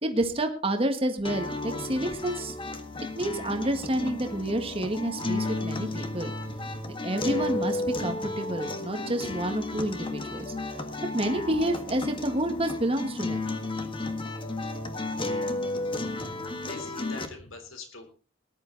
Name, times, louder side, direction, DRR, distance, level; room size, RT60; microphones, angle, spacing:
voice 1, 0.0-2.5 3.1-6.3 7.0-10.5 11.1-13.4, right 1 dB, 30° right, 5 dB, 1.7 m, -29 dB
sound 1, 1.2-17.3, left 2 dB, 25° left, 1.7 m, -33 dB
voice 2, 6.4-6.8 7.3-7.7 9.2-9.4 9.7-9.9 11.3-11.5 16.3-16.4 16.7-18.1, left 3 dB, 75° left, 7 dB, 3.7 m, -45 dB
19.0 x 11.0 x 4.1 m, 0.36 s
head